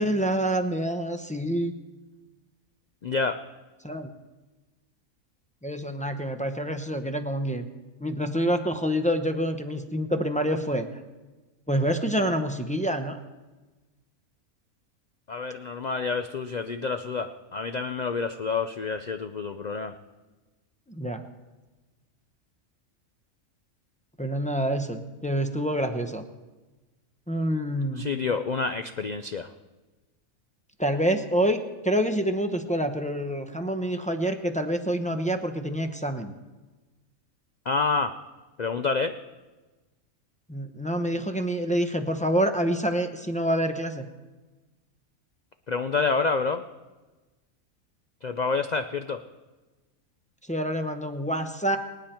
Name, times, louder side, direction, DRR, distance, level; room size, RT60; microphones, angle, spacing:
voice 1, 0.0-1.7 3.8-4.1 5.6-7.7 8.0-10.9 11.7-13.2 20.9-21.2 24.2-26.2 27.3-28.0 30.8-31.6 31.8-36.3 40.5-44.1 50.5-51.8, equal, 5° left, 4 dB, 0.6 m, -27 dB
voice 2, 3.0-3.4 15.3-19.9 28.0-29.5 37.7-38.1 38.6-39.1 45.7-46.6 48.2-49.2, left 4 dB, 70° left, 9 dB, 0.4 m, -28 dB
24.0 x 9.4 x 4.4 m, 1.2 s
omnidirectional pair, 1.5 m